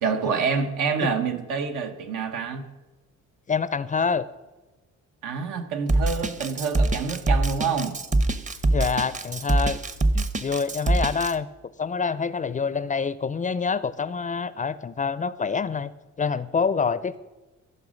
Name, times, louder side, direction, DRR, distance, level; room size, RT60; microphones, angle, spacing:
voice 1, 0.0-2.6 5.2-8.0, right 5 dB, 85° right, 6 dB, 1.2 m, -27 dB
voice 2, 3.5-4.3 8.7-9.8 10.1-11.5 11.8-15.9 16.2-17.2, left 5 dB, 25° left, 16 dB, 0.4 m, -26 dB
Drum kit, 5.9-11.3, right 2 dB, 25° right, 0.7 m, -23 dB
14.5 x 5.4 x 6.3 m, 1.1 s
cardioid pair, 90°, 30 cm